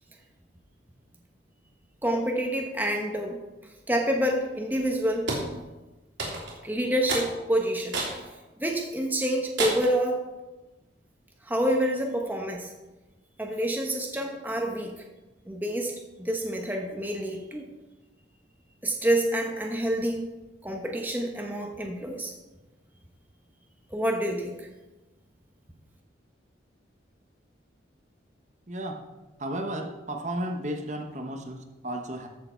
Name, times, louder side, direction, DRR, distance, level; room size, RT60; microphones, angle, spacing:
voice 1, 2.0-3.4 3.9-5.3 6.6-8.0 8.6-10.2 11.4-12.7 13.4-14.9 15.5-17.6 18.8-20.3 20.6-22.3 23.9-24.7, right 1 dB, 10° right, 1 dB, 1.0 m, -27 dB
sound 1, 5.3-5.5 6.2-6.6 7.1-7.3 7.9-8.2 8.7-8.8 9.6-10.0, right 2 dB, 75° right, 3.0 m, -29 dB
voice 2, 28.7-29.0 29.4-32.3, right 1 dB, 40° right, 3 dB, 1.0 m, -33 dB
13.5 x 6.8 x 4.5 m, 1.1 s
head